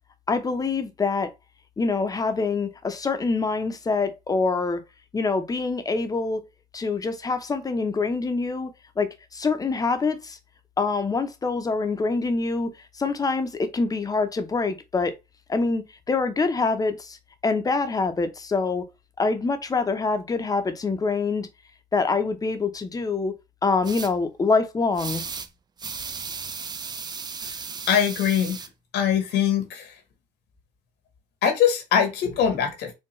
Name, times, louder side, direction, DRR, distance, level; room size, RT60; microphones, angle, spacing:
voice 1, 0.3-1.3 1.8-4.8 5.1-6.4 6.7-8.7 9.0-10.4 10.8-15.1 15.5-17.2 17.4-18.9 19.2-21.5 21.9-23.3 23.6-25.2, left 4 dB, 20° left, 0.7 m, -25 dB
sound 1, 23.8-24.1 25.0-25.5 25.8-28.7, right 5 dB, 25° right, 0.4 m, -35 dB
voice 2, 27.9-28.6 28.9-30.0 31.4-32.9, left 8 dB, 80° left, 1.4 m, -22 dB
4.4 x 2.3 x 3.1 m
cardioid pair, 110°, 17 cm